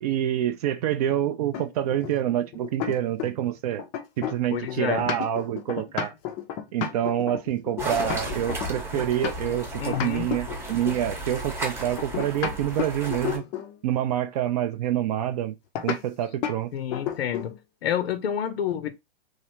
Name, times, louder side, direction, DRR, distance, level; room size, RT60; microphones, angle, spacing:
voice 1, 0.0-3.8 4.2-6.1 6.7-13.4 13.8-15.5 15.8-16.7, right 11 dB, 40° right, 0.4 m, -27 dB
sound 1, 1.5-3.5 3.8-9.6 9.9-11.1 12.0-13.8 15.7-16.0 16.4-16.6 16.9-17.6, left 9 dB, 25° left, 0.4 m, -32 dB
voice 2, 4.5-5.1 9.8-10.3 16.7-17.6 17.8-18.9, left 9 dB, 75° left, 0.6 m, -29 dB
sound 2, 7.8-13.4, right 2 dB, 10° right, 0.7 m, -34 dB
3.2 x 2.5 x 2.9 m
hypercardioid pair, 130°, 31 cm